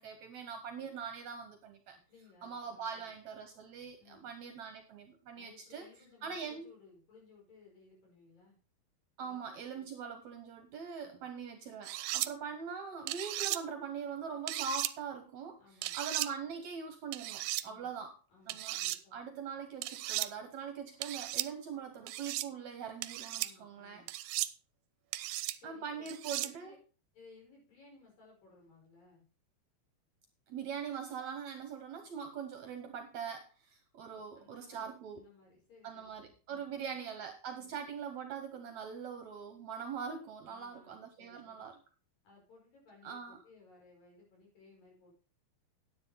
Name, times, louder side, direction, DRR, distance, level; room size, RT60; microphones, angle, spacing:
voice 1, 0.0-2.0 2.4-5.8 6.2-6.6 9.2-15.6 15.9-18.1 18.5-18.8 19.1-24.0 25.6-26.7 30.5-35.2 35.8-41.7 43.0-43.4, right 6 dB, 65° right, 6 dB, 2.0 m, -42 dB
voice 2, 2.1-3.1 4.0-4.3 5.3-8.6 9.2-9.9 11.0-11.3 15.6-16.0 17.6-17.9 18.3-19.2 23.4-24.1 25.6-26.8 27.1-29.3 34.1-36.9 37.5-37.8 40.4-41.7 42.2-45.1, left 4 dB, 65° left, -2 dB, 6.8 m, -61 dB
sound 1, 11.8-12.3 13.1-13.6 14.5-14.9 15.8-16.3 17.1-17.6 18.5-19.0 19.8-20.3 21.0-21.5 22.1-22.5 23.0-23.5 24.1-24.5 25.1-25.6 26.1-26.5, right 16 dB, 80° right, 2.2 m, -36 dB
9.7 x 9.6 x 4.0 m, 0.35 s
omnidirectional pair, 4.2 m